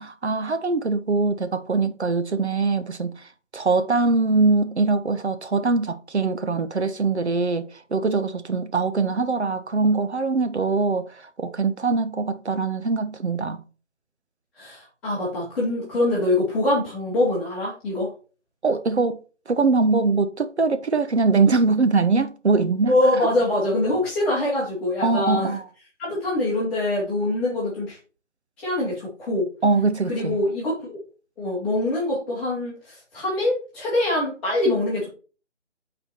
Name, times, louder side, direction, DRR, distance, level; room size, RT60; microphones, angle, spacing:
voice 1, 0.0-3.3 3.5-13.6 18.6-19.2 19.5-23.0 25.0-25.6 29.6-30.4, right 3 dB, 65° right, 0.8 m, -22 dB
voice 2, 14.6-18.1 22.9-25.6 26.0-28.0 28.6-29.5 30.1-31.0 31.4-35.1, left 1 dB, 5° left, 1.0 m, -24 dB
7.7 x 4.3 x 4.3 m
figure-of-eight pair, 155°, 36 cm